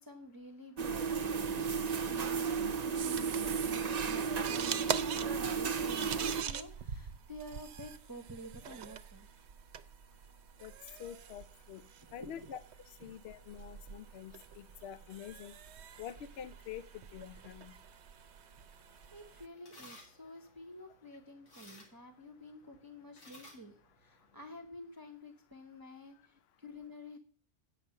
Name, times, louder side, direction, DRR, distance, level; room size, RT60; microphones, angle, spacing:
voice 1, 0.0-9.3 12.2-12.5 19.1-27.2, equal, 20° right, 4 dB, 0.9 m, -50 dB
sound 1, 0.8-6.4, right 6 dB, 40° right, 0.7 m, -34 dB
sound 2, 3.0-19.5, right 8 dB, 70° right, 0.9 m, -44 dB
voice 2, 11.0-11.8 12.1-12.6 13.0-15.6 16.0-17.7, left 9 dB, 65° left, 13 dB, 0.8 m, -46 dB
sound 3, 18.6-24.7, left 1 dB, 85° left, 2.4 m, -59 dB
8.7 x 5.8 x 6.7 m, 0.41 s
omnidirectional pair, 1.2 m